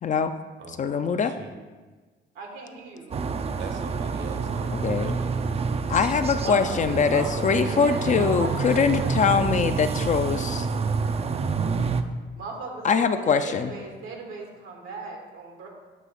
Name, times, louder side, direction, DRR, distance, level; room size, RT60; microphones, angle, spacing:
voice 1, 0.0-0.3 0.7-1.3 4.7-5.2 5.9-10.7 12.8-13.7, left 6 dB, 40° left, 9 dB, 0.4 m, -23 dB
voice 2, 1.2-1.5 3.6-5.4, right 4 dB, 65° right, 4 dB, 1.1 m, -40 dB
voice 3, 2.3-3.2 6.4-9.6 12.3-15.7, right 3 dB, 90° right, 1 dB, 1.4 m, -37 dB
sound 1, 3.1-12.0, right 5 dB, 30° right, 0.4 m, -28 dB
7.5 x 3.0 x 5.7 m, 1.3 s
cardioid pair, 90°, 20 cm